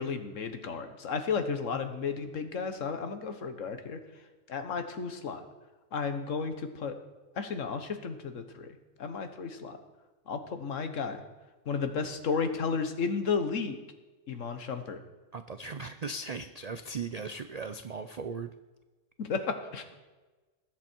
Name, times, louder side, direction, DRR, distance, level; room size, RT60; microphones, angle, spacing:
voice 1, 0.0-4.0 4.5-5.5 5.9-7.0 7.4-8.7 9.0-9.8 10.3-11.2 11.7-13.8 14.3-15.0 19.2-19.8, left 5 dB, 70° left, 8 dB, 1.5 m, -33 dB
voice 2, 15.3-18.5, right 4 dB, 65° right, 10 dB, 0.4 m, -38 dB
20.5 x 8.1 x 4.5 m, 1.2 s
omnidirectional pair, 1.4 m